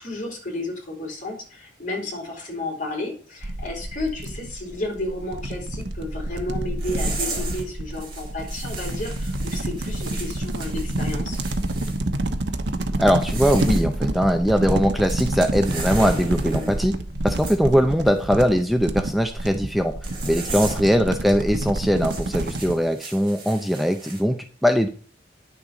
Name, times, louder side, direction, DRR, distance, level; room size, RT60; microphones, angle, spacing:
voice 1, 0.0-11.4 20.5-20.8, left 2 dB, 45° left, -1 dB, 4.3 m, -32 dB
sound 1, 3.4-22.7, right 1 dB, 70° right, 1.1 m, -28 dB
sound 2, 6.8-7.6 7.9-12.0 13.1-13.8 15.1-16.8 17.4-17.6 20.0-20.9 21.2-21.4 22.0-24.2, right 3 dB, 25° right, 5.4 m, -36 dB
voice 2, 13.0-17.0 17.2-20.0 20.2-24.4 24.6-24.9, equal, ahead, 5 dB, 0.5 m, -21 dB
9.9 x 7.2 x 5.1 m, 0.42 s
head